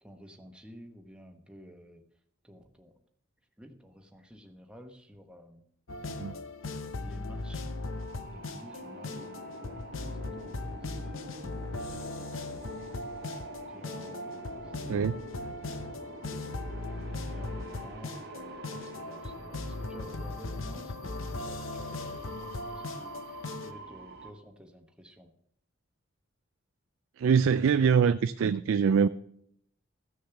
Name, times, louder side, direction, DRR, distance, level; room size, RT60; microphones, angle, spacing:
voice 1, 0.0-2.0 2.4-3.0 3.6-5.7 7.0-7.7 8.3-13.1 13.7-15.2 16.2-25.3, equal, 5° right, 1.0 m, -52 dB
sound 1, 5.9-23.7, left 2 dB, 80° left, 0.8 m, -38 dB
sound 2, 7.2-24.3, right 3 dB, 55° right, 1.1 m, -47 dB
voice 2, 27.2-29.1, right 6 dB, 85° right, 0.3 m, -23 dB
14.5 x 6.6 x 5.8 m
head